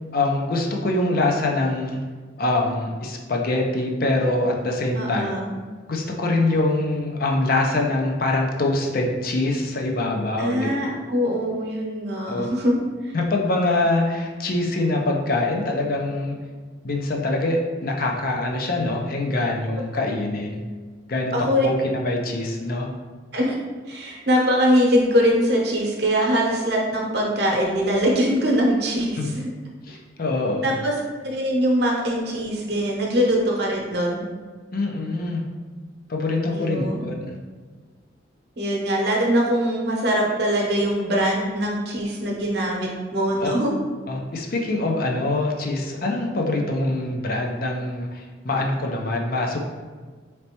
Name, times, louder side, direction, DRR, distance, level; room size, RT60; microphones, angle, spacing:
voice 1, 0.1-2.0 2.4-5.3 5.9-10.7 12.3-12.5 13.1-16.4 16.8-20.6 21.1-21.3 21.6-22.9 29.2-29.3 29.8-30.7 34.7-35.5 36.1-37.4 43.4-43.5 44.1-49.6, left 2 dB, 55° left, 1 dB, 0.5 m, -24 dB
voice 2, 5.0-5.5 10.4-12.7 13.0-13.1 21.3-21.7 23.3-23.6 23.9-29.5 30.6-30.9 31.2-34.2 36.5-37.0 38.6-43.7, equal, 60° right, -2 dB, 0.9 m, -22 dB
4.0 x 3.3 x 2.9 m, 1.4 s
head